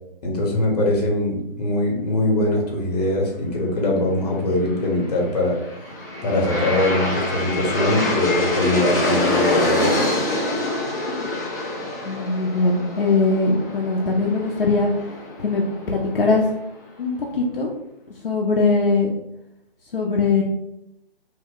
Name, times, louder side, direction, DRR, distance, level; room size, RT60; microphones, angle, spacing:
voice 1, 0.2-5.9 6.2-10.0, left 1 dB, 40° left, 0 dB, 0.9 m, -22 dB
Aircraft, 5.4-16.5, left 1 dB, 20° left, 0.4 m, -25 dB
voice 2, 12.0-14.9 15.4-16.4 17.0-17.7 18.2-19.1 19.9-20.4, left 3 dB, 65° left, -2 dB, 0.6 m, -21 dB
2.8 x 2.1 x 3.6 m, 0.84 s
figure-of-eight pair, 145°, 30 cm